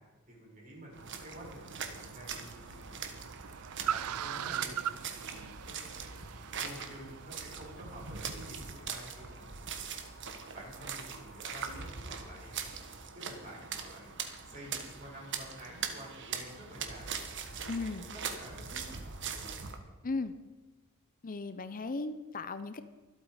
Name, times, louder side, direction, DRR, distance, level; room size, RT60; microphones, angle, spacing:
voice 1, 0.3-2.8 3.9-4.8 5.1-6.2 6.6-9.5 10.2-12.5 13.1-14.1 14.5-17.2 17.4-18.8, right 1 dB, 40° right, -3 dB, 6.0 m, -49 dB
sound 1, 0.9-19.8, right 6 dB, 55° right, 1.5 m, -42 dB
Car, 1.1-8.4, right 10 dB, 85° right, 0.4 m, -41 dB
voice 2, 17.7-18.1 20.0-20.3 21.2-22.8, left 3 dB, 40° left, 12 dB, 0.6 m, -36 dB
24.0 x 8.4 x 4.9 m, 1.2 s
head